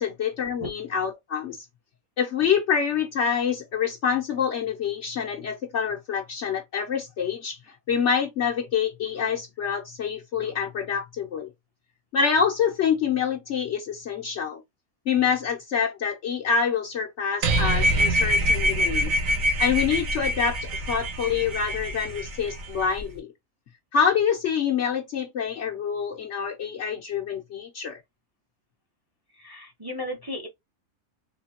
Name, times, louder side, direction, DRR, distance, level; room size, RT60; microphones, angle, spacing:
voice 1, 0.0-1.6 2.2-7.6 7.9-11.5 12.1-14.6 15.1-19.1 19.6-20.6 20.9-23.3 23.9-28.0, left 7 dB, 60° left, 0.9 m, -26 dB
sound 1, 17.4-23.0, equal, 70° right, 1.4 m, -25 dB
voice 2, 29.4-30.5, left 1 dB, 20° right, 0.8 m, -35 dB
3.8 x 3.1 x 2.8 m
omnidirectional pair, 1.5 m